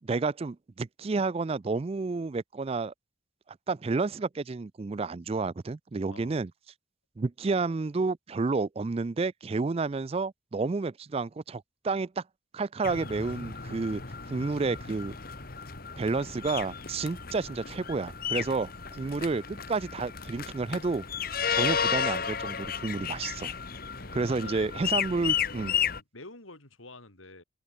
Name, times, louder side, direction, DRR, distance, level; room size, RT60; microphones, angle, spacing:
voice 1, 0.0-2.9 3.5-6.5 7.2-12.2 12.5-14.0 14.3-15.2 16.0-21.0 21.3-23.5 24.1-25.8, right 3 dB, 30° right, 0.4 m, -30 dB
sound 1, 12.8-26.0, left 7 dB, 45° left, 1.7 m, -33 dB
voice 2, 24.0-25.0 25.6-27.4, left 2 dB, 90° left, 5.6 m, -48 dB
open air
head